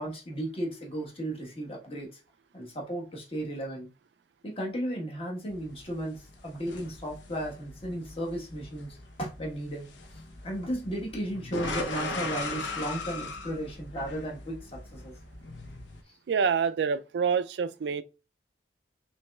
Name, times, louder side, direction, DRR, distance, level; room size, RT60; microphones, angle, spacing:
voice 1, 0.0-2.2 2.5-3.9 4.4-9.9 10.4-15.1, right 1 dB, 30° left, 1.3 m, -35 dB
sound 1, 5.5-16.0, left 2 dB, 90° left, 0.8 m, -39 dB
voice 2, 16.3-18.0, right 6 dB, 65° right, 0.3 m, -27 dB
5.8 x 3.1 x 2.3 m
head